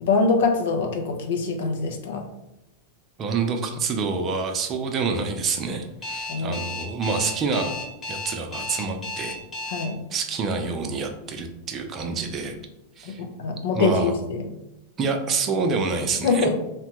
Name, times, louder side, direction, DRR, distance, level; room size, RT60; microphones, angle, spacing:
voice 1, 0.0-2.2 6.3-6.6 9.7-10.0 13.2-14.4 16.2-16.5, left 4 dB, 70° left, 3 dB, 0.6 m, -23 dB
voice 2, 3.2-7.8 8.1-9.4 10.1-12.6 13.0-13.2 13.7-14.1 15.0-16.5, right 4 dB, 30° right, 3 dB, 0.5 m, -27 dB
Alarm, 6.0-9.8, left 3 dB, 20° left, 1.1 m, -33 dB
2.8 x 2.1 x 2.9 m, 0.92 s
hypercardioid pair, 115°, 0 cm